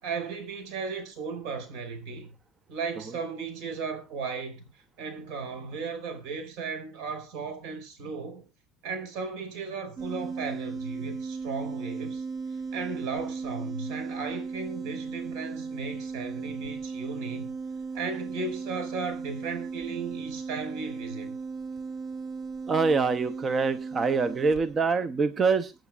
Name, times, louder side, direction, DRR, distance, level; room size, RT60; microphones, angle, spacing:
voice 1, 0.0-2.3 2.7-4.7 5.0-8.4 8.8-12.2 12.7-17.5 17.9-21.3, right 4 dB, 70° right, 5.3 m, -36 dB
sound 1, 10.0-24.7, right 4 dB, 40° right, 0.9 m, -36 dB
voice 2, 22.7-25.7, right 4 dB, 20° right, 0.6 m, -25 dB
24.0 x 8.9 x 2.4 m
cardioid pair, 165°, 0 cm